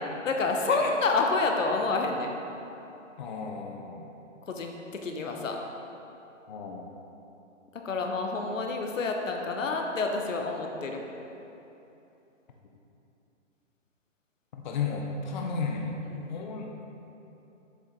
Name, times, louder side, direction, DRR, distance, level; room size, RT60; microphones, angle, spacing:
voice 1, 0.2-2.3 4.5-5.6 7.7-11.0 15.4-15.5 16.1-16.3, left 3 dB, 85° left, 2 dB, 0.9 m, -28 dB
voice 2, 3.2-4.1 6.5-6.8 14.5-16.0 16.3-16.9, left 5 dB, 40° left, 1 dB, 0.5 m, -34 dB
7.2 x 4.5 x 3.8 m, 2.9 s
hypercardioid pair, 155°, 38 cm